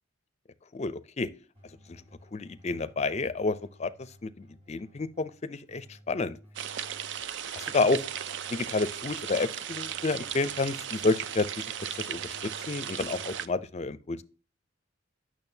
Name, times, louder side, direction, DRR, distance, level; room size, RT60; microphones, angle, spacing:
voice 1, 0.7-1.3 1.9-2.0 2.3-6.4 7.5-8.0 8.5-11.7 12.0-14.2, left 3 dB, 35° left, 0.5 m, -30 dB
Keyboard (musical), 1.5-13.6, equal, 35° right, 4.2 m, -56 dB
sound 1, 6.5-13.5, right 9 dB, 65° right, 0.4 m, -36 dB
8.8 x 6.2 x 2.7 m
head